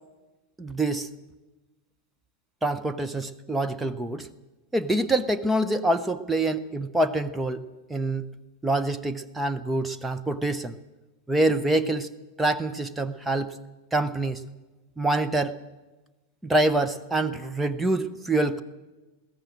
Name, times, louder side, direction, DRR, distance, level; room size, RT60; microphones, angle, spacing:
voice 1, 0.6-1.1 2.6-4.3 4.7-8.3 8.6-10.7 11.3-12.1 12.4-13.5 13.9-14.4 15.0-15.5 16.4-18.6, right 2 dB, 10° right, 8 dB, 0.8 m, -26 dB
21.0 x 17.0 x 7.4 m, 1.2 s
figure-of-eight pair, 90°, 0 cm